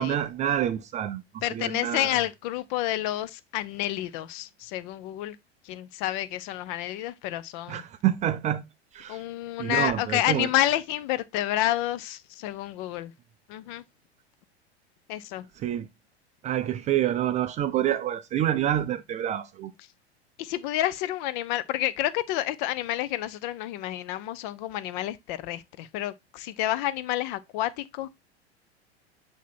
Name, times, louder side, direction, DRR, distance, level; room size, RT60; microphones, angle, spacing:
voice 1, 0.0-2.2 7.7-8.6 8.9-9.2 9.6-10.5 15.6-15.9 16.4-19.7, right 11 dB, 20° right, 0.4 m, -27 dB
voice 2, 1.4-5.4 5.7-7.8 9.1-13.1 13.5-13.8 15.1-15.4 20.4-28.1, left 14 dB, 45° left, 0.7 m, -29 dB
8.1 x 2.9 x 4.3 m
figure-of-eight pair, 90°, 34 cm